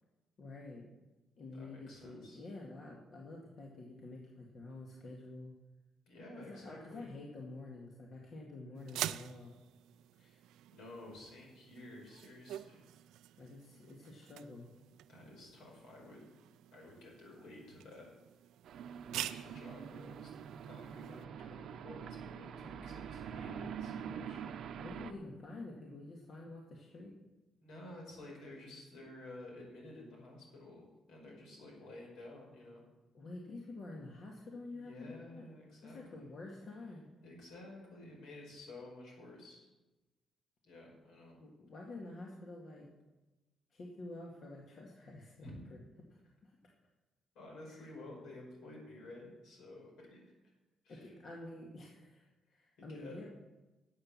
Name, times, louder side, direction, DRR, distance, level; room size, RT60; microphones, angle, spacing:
voice 1, 0.4-1.0 1.4-5.5 6.4-9.5 13.4-14.7 24.8-27.1 33.1-35.5 35.8-37.1 41.4-42.9 43.7-45.8 46.4-46.6 47.7-47.9 50.9-53.3, left 2 dB, 55° left, -2 dB, 2.0 m, -48 dB
voice 2, 1.5-2.4 6.1-7.1 10.2-10.4 10.7-12.8 13.4-13.5 15.1-16.2 16.7-18.1 19.1-20.3 20.6-24.7 27.6-32.8 34.7-36.3 37.2-39.7 40.6-41.4 45.4-45.6 47.3-50.3 50.8-51.1 52.8-53.3, left 1 dB, 85° left, -1 dB, 5.4 m, -52 dB
sound 1, 8.8-21.2, right 13 dB, 90° right, 0.4 m, -47 dB
sound 2, 18.6-25.1, right 7 dB, 70° right, 0.8 m, -45 dB
11.5 x 7.8 x 7.4 m, 1.1 s
cardioid pair, 90°, 0 cm